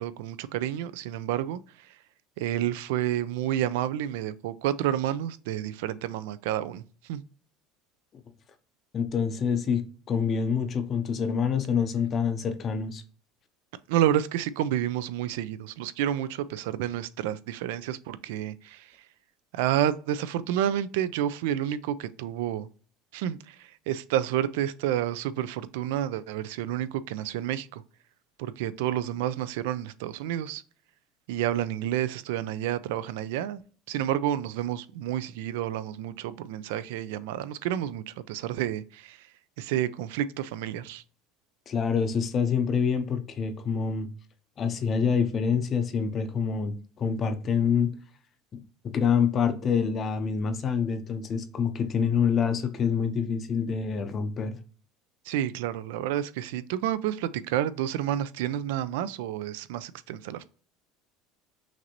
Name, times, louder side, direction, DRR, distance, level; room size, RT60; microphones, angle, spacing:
voice 1, 0.0-2.0 2.4-7.2 13.9-19.0 19.5-22.7 23.1-27.8 28.4-30.6 31.3-33.6 33.9-39.3 39.6-41.0 55.2-60.4, right 11 dB, 90° right, 0.4 m, -30 dB
voice 2, 8.9-13.0 41.7-44.1 44.6-47.9 48.5-48.6 48.8-54.6, left 6 dB, 25° left, 0.5 m, -26 dB
6.0 x 2.6 x 2.9 m
cardioid pair, 170°, 0 cm